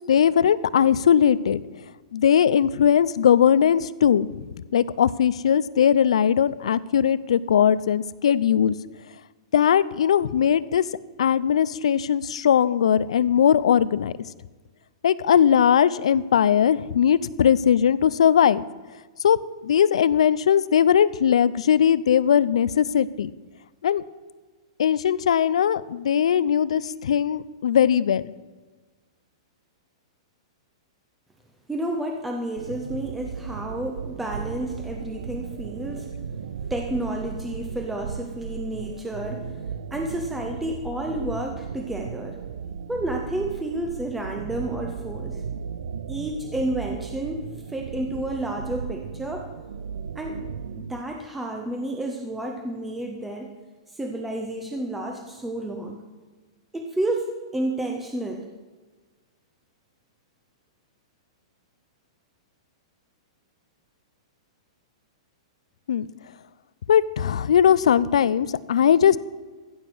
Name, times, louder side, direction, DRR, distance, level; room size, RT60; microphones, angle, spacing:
voice 1, 0.1-1.6 2.1-4.3 4.7-8.8 9.5-10.8 11.2-14.1 15.0-18.6 19.2-19.4 19.6-23.3 23.8-24.0 24.8-28.2 65.9-66.1 66.9-69.2, left 8 dB, 90° left, 18 dB, 0.5 m, -19 dB
voice 2, 31.7-36.1 36.7-39.5 39.9-42.4 42.9-45.4 46.1-49.5 50.2-50.4 50.8-53.5 53.9-56.0 56.7-58.5, right 1 dB, 5° right, 2 dB, 0.6 m, -30 dB
sound 1, 32.6-51.0, right 7 dB, 90° right, 0.6 m, -35 dB
15.0 x 7.2 x 6.2 m, 1.4 s
supercardioid pair, 180°, 3 cm